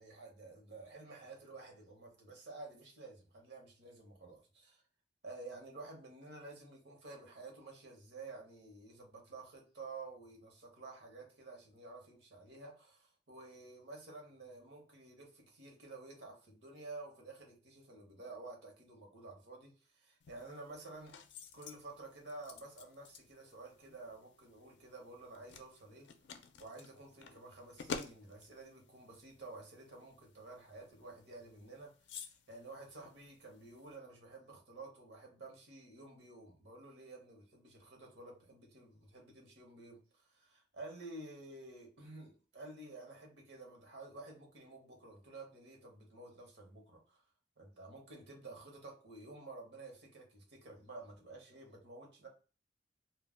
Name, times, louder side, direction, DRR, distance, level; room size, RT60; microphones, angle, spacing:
voice 1, 0.0-4.8 5.2-21.1 21.5-26.1 26.6-31.9 32.2-47.2 47.6-52.3, right 2 dB, 70° right, 0.9 m, -51 dB
sound 1, 20.2-34.0, left 5 dB, 85° left, 0.4 m, -52 dB
2.3 x 2.2 x 3.4 m
head